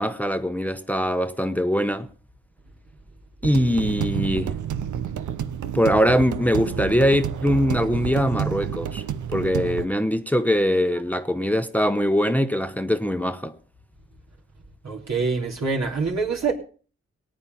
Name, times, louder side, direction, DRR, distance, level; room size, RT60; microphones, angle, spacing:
voice 1, 0.0-2.1 3.4-4.5 5.7-9.0 9.3-13.5, equal, 5° left, 1.0 m, -22 dB
sound 1, 3.4-9.9, right 9 dB, 90° right, 0.8 m, -29 dB
voice 2, 14.8-16.5, right 4 dB, 70° right, 3.7 m, -25 dB
18.5 x 8.9 x 5.5 m
cardioid pair, 45°, 29 cm